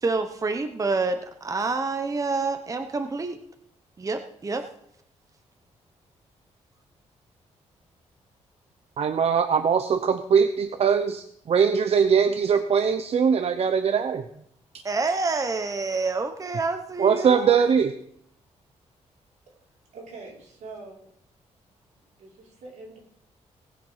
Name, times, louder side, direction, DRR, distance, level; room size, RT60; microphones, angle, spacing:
voice 1, 0.0-3.4 4.0-4.7 14.8-17.6, right 3 dB, 30° right, 7 dB, 1.0 m, -27 dB
voice 2, 9.0-14.3 14.7-14.8 17.0-17.9, right 6 dB, 55° right, 9 dB, 0.8 m, -21 dB
voice 3, 19.9-21.1 21.9-23.0, right 3 dB, 85° right, -4 dB, 5.5 m, -44 dB
18.5 x 6.8 x 5.6 m, 0.71 s
cardioid pair, 105°, 12 cm